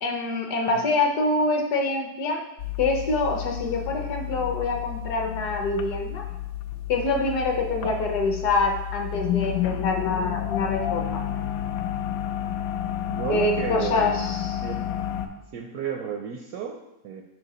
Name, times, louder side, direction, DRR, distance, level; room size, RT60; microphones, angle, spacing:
voice 1, 0.0-2.4 2.8-6.2 6.9-11.2 13.3-14.5, left 3 dB, 65° left, 3 dB, 1.3 m, -25 dB
sound 1, 2.6-15.3, left 11 dB, 85° left, 1.3 m, -30 dB
voice 2, 13.1-14.1 14.6-14.9 15.5-17.2, right 7 dB, 75° right, 3 dB, 0.9 m, -32 dB
6.6 x 4.7 x 4.2 m, 0.89 s
omnidirectional pair, 2.0 m